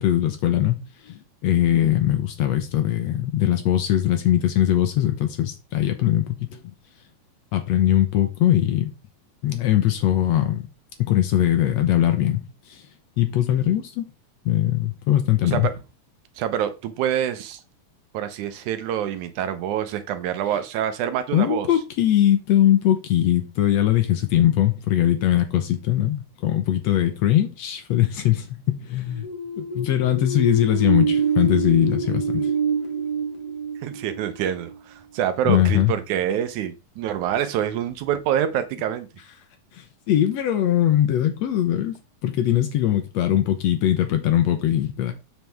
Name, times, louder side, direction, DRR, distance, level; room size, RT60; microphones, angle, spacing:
voice 1, 0.0-6.6 7.5-8.9 9.4-10.7 11.0-12.8 13.2-14.0 14.4-15.7 21.3-29.2 29.6-32.5 35.4-35.9 39.7-42.0 42.2-45.1, left 12 dB, 70° left, 1.8 m, -21 dB
voice 2, 16.4-17.6 18.1-21.7 33.8-39.1, right 10 dB, 75° right, 2.2 m, -26 dB
sound 1, 29.1-34.7, right 4 dB, 15° left, 1.4 m, -26 dB
7.4 x 6.2 x 3.4 m
omnidirectional pair, 3.6 m